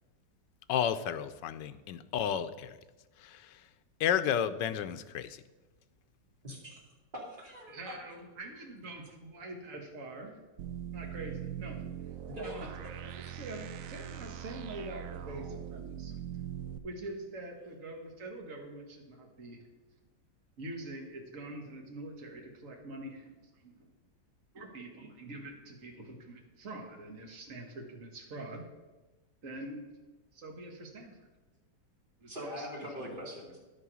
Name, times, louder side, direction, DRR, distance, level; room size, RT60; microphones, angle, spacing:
voice 1, 0.7-2.8 3.2-3.7 4.0-5.4, left 9 dB, 85° left, 11 dB, 1.3 m, -32 dB
voice 2, 6.4-6.8 7.1-7.9 12.3-12.5 13.2-13.3 32.3-33.6, equal, 30° right, -2 dB, 2.7 m, -42 dB
voice 3, 7.7-10.4 10.9-11.8 12.4-12.7 13.0-16.1 16.8-19.7 20.6-23.8 24.5-28.7 29.4-29.9 30.3-31.2 32.2-33.3, right 2 dB, 50° right, 1 dB, 2.0 m, -45 dB
sound 1, 10.6-16.8, right 10 dB, 70° right, 0.8 m, -41 dB
11.0 x 6.8 x 6.2 m, 1.2 s
omnidirectional pair, 1.9 m